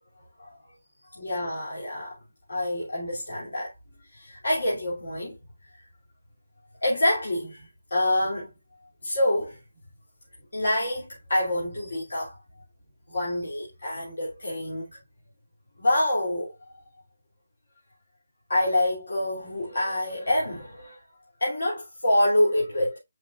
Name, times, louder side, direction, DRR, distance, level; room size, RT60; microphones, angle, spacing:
voice 1, 1.2-2.2 2.5-3.7 4.1-5.4 6.8-8.5 9.0-9.6 10.5-12.4 13.1-15.0 15.8-16.8 18.5-21.0 21.4-23.0, left 1 dB, 80° left, 3.0 m, -26 dB
7.6 x 5.2 x 2.5 m
hypercardioid pair, 165°, 0 cm